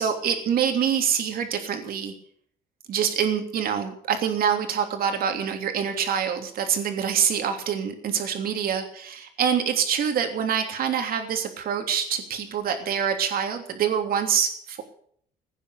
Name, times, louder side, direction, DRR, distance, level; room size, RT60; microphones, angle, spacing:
voice 1, 0.0-2.1 2.9-14.8, right 8 dB, 60° right, 5 dB, 3.2 m, -25 dB
16.5 x 9.7 x 8.3 m, 0.62 s
cardioid pair, 110°, 17 cm